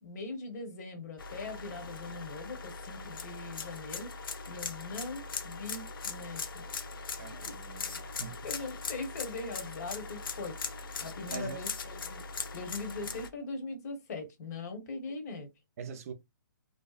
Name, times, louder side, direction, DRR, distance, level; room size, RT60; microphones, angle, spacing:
voice 1, 0.0-4.1 4.5-6.6 7.5-7.6 8.4-10.6 11.0-12.2 12.5-15.5, left 3 dB, 50° left, 1.0 m, -41 dB
sound 1, 1.2-13.3, left 4 dB, 75° left, 0.6 m, -40 dB
voice 2, 7.2-8.5 11.3-11.6 15.8-16.1, right 6 dB, 40° right, 0.4 m, -43 dB
2.6 x 2.0 x 2.3 m
hypercardioid pair, 145°, 12 cm